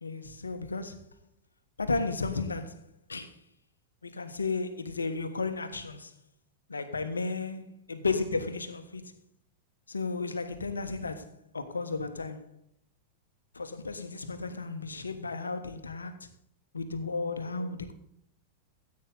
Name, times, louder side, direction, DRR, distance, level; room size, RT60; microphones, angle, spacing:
voice 1, 0.0-1.0 1.8-3.4 4.0-6.1 6.7-9.1 9.9-12.5 13.5-16.3 16.7-17.9, left 4 dB, 85° left, 1.2 m, -34 dB
14.5 x 8.6 x 4.0 m
figure-of-eight pair, 95°, 0 cm